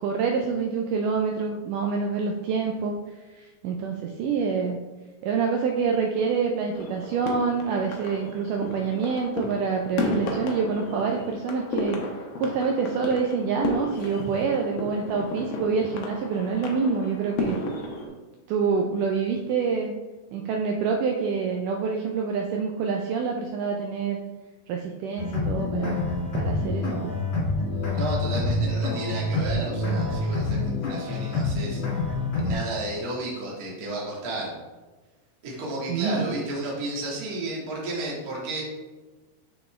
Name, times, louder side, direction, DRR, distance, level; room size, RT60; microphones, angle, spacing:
voice 1, 0.0-3.0 3.4-4.8 5.2-12.0 12.4-17.6 18.1-18.2 18.5-19.9 20.3-24.2 24.7-26.1 26.3-27.1 35.9-36.3, right 5 dB, 90° right, 2 dB, 1.8 m, -26 dB
sound 1, 6.7-18.1, left 2 dB, 90° left, 1.4 m, -33 dB
sound 2, 25.2-32.5, left 2 dB, 45° left, 2.5 m, -27 dB
voice 2, 27.9-31.8 32.4-34.6 35.4-38.6, right 2 dB, 40° right, -4 dB, 1.3 m, -32 dB
6.8 x 6.6 x 3.3 m, 1.2 s
omnidirectional pair, 4.4 m